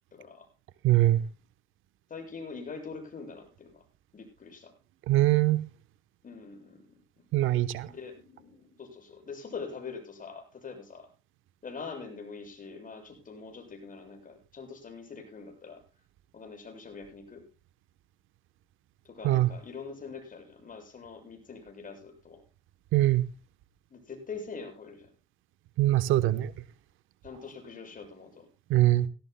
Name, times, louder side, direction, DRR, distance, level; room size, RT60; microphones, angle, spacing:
voice 1, 0.1-0.5 2.1-3.8 4.1-4.7 6.2-6.8 7.9-11.1 11.6-15.8 16.3-17.4 19.0-22.4 23.9-25.1 27.2-28.5, left 5 dB, 45° left, 7.2 m, -43 dB
voice 2, 0.8-1.2 5.1-5.6 7.3-7.9 19.2-19.5 22.9-23.2 25.8-26.5 28.7-29.1, right 15 dB, 90° right, 1.0 m, -22 dB
18.0 x 17.5 x 2.2 m
cardioid pair, 90°, 20 cm